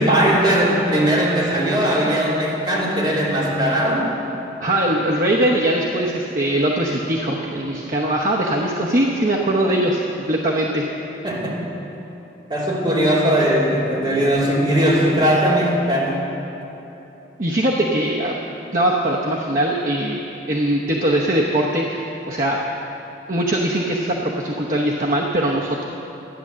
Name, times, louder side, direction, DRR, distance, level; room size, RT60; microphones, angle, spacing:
voice 1, 0.0-4.1 11.2-11.6 12.5-16.2, equal, 25° right, -6 dB, 2.9 m, -19 dB
voice 2, 4.6-10.8 17.4-18.4 18.7-20.2 20.5-22.6 23.3-25.8, right 1 dB, 50° right, -3 dB, 0.9 m, -21 dB
13.0 x 9.6 x 7.4 m, 3.0 s
head